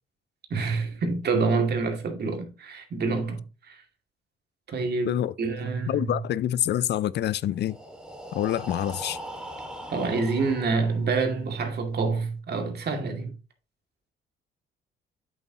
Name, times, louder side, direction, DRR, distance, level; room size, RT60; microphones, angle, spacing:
voice 1, 0.5-3.8 4.7-6.2 9.9-13.3, right 4 dB, 55° right, 2.3 m, -27 dB
voice 2, 5.9-7.8 8.3-9.2, left 12 dB, 60° left, 0.4 m, -26 dB
Breathing, 7.5-11.4, right 1 dB, 5° right, 2.1 m, -40 dB
8.3 x 7.3 x 2.9 m
cardioid pair, 90°, 20 cm